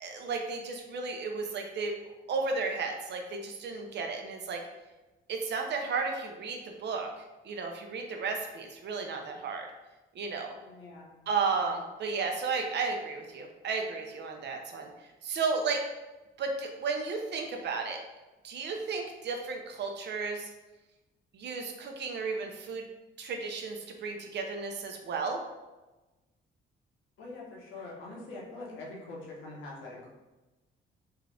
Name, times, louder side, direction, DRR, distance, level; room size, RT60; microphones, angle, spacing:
voice 1, 0.0-1.9 2.3-4.6 5.3-7.1 7.4-9.7 10.1-10.5 11.3-14.9 15.2-15.8 16.4-18.0 18.4-20.5 21.3-22.8 23.2-25.4, right 4 dB, 60° right, 3 dB, 0.7 m, -33 dB
voice 2, 10.6-11.2 27.2-30.1, left 2 dB, 80° left, -4 dB, 1.2 m, -44 dB
3.6 x 2.5 x 3.4 m, 1.1 s
cardioid pair, 90°, 20 cm